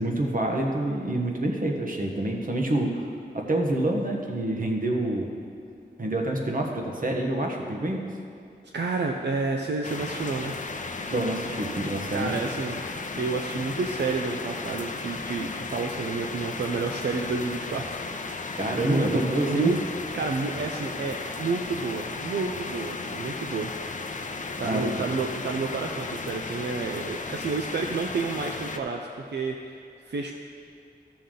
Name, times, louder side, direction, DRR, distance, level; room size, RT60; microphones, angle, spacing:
voice 1, 0.0-3.0 3.3-5.3 6.0-8.0 11.1-12.3 18.6-19.7 24.6-25.1, right 1 dB, 50° right, 1 dB, 1.3 m, -27 dB
voice 2, 8.7-10.5 12.1-12.8 13.2-18.0 18.5-19.8 20.1-23.7 24.6-30.3, right 4 dB, 80° right, 2 dB, 0.5 m, -30 dB
sound 1, 9.8-28.8, left 3 dB, 45° left, 0.7 m, -35 dB
14.0 x 6.9 x 3.8 m, 2.4 s
wide cardioid pair, 80°, 18 cm